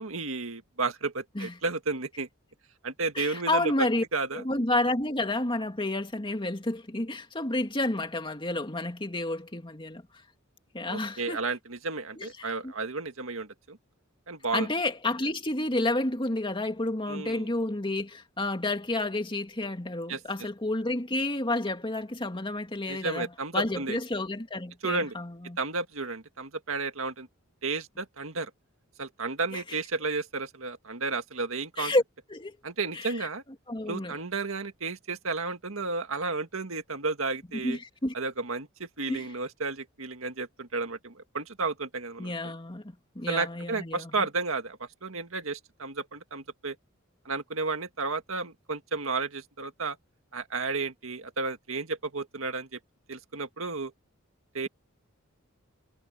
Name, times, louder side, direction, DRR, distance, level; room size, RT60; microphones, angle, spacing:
voice 1, 0.0-2.3 2.8-4.4 10.8-13.8 14.3-14.7 17.1-17.5 20.1-20.2 22.9-24.0 24.8-25.1 25.6-27.3 27.6-28.5 29.0-31.9 32.6-33.4 33.9-37.8 38.1-42.3 43.3-46.8 47.3-50.0 50.3-52.8 53.1-53.9 54.5-54.7, right 3 dB, 75° right, 1.9 m, -32 dB
voice 2, 3.2-4.0 4.3-10.0 10.7-11.4 12.2-12.7 14.5-25.6 29.5-29.6 31.8-32.0 32.3-32.6 32.9-33.3 33.7-34.2 37.6-38.1 39.1-39.3 42.2-44.1, left 2 dB, 25° left, 2.4 m, -30 dB
head